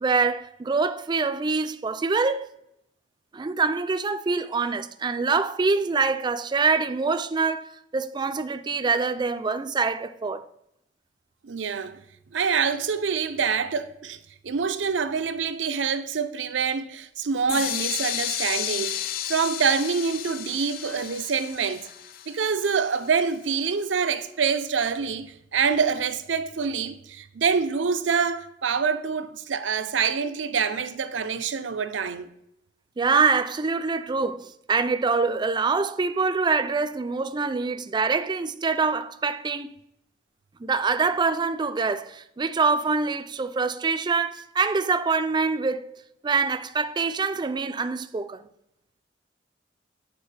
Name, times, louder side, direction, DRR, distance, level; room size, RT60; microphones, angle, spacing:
voice 1, 0.0-2.5 3.3-10.5 33.0-39.7 40.6-45.9 46.2-48.5, right 4 dB, 25° right, 0.4 m, -25 dB
voice 2, 11.4-12.0 12.3-14.2 14.4-21.9 22.3-32.3, right 6 dB, 90° right, 0.5 m, -26 dB
sound 1, 17.5-23.3, left 11 dB, 55° left, 0.3 m, -32 dB
8.7 x 4.4 x 3.3 m
head